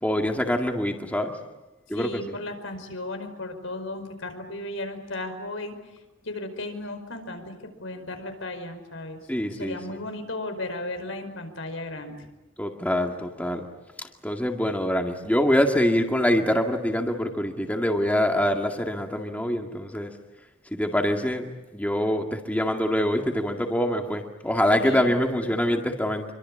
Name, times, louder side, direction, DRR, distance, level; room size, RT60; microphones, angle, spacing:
voice 1, 0.0-1.3 1.9-2.3 9.3-10.0 12.6-13.7 14.0-20.1 20.7-21.4 21.7-26.2, equal, 10° left, 3 dB, 2.1 m, -25 dB
voice 2, 1.9-5.7 6.2-7.5 7.8-9.2 9.5-12.2 24.8-25.1 25.4-25.6, left 2 dB, 85° left, 7 dB, 5.1 m, -35 dB
27.0 x 24.0 x 8.8 m, 1.1 s
head